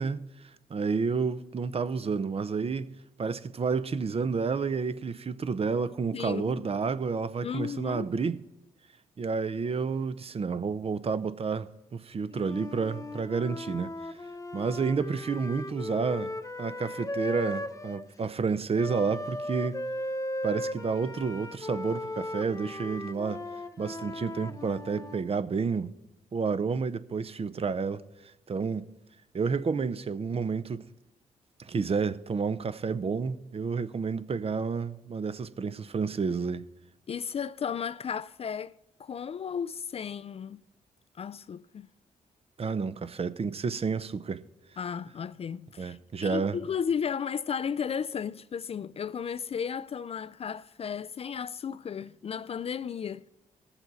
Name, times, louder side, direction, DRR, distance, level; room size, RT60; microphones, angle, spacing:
voice 1, 0.0-2.9 3.2-8.4 9.2-13.9 14.5-16.3 16.6-19.8 20.4-23.4 23.8-25.9 26.3-28.0 28.5-28.9 29.3-30.9 31.6-36.6 42.6-44.4 45.8-46.6, right 5 dB, 40° right, 0.6 m, -30 dB
voice 2, 6.1-6.6 7.4-8.0 37.1-38.7 39.0-40.6 41.2-41.9 44.8-53.3, left 7 dB, 40° left, 0.3 m, -34 dB
Wind instrument woodwind instrument, 12.3-18.1 18.8-25.2, left 1 dB, 20° left, 0.9 m, -37 dB
18.0 x 7.1 x 4.1 m
supercardioid pair, 55°, 15 cm